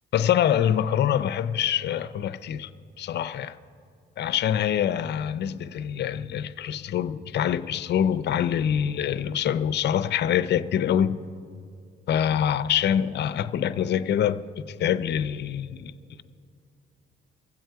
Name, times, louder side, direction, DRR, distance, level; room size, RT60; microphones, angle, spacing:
voice 1, 0.1-2.7 3.0-3.6 4.2-11.2 12.1-15.9, left 9 dB, 60° left, 0.5 m, -25 dB
23.0 x 7.8 x 4.6 m
cardioid pair, 90°, 20 cm